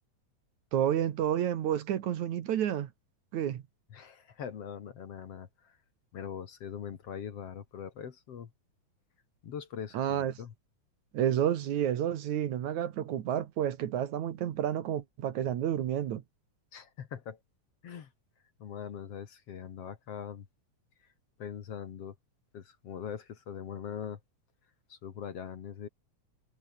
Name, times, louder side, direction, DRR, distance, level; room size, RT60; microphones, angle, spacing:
voice 1, 0.7-2.9 3.3-3.6 9.9-10.3 11.1-16.2, right 10 dB, 65° right, 2.7 m, -30 dB
voice 2, 3.9-5.8 6.1-8.5 9.4-10.5 16.7-17.4 17.8-18.1 18.6-20.5 21.4-22.2 22.5-24.2 24.9-25.9, left 7 dB, 55° left, 2.5 m, -42 dB
omnidirectional pair, 3.7 m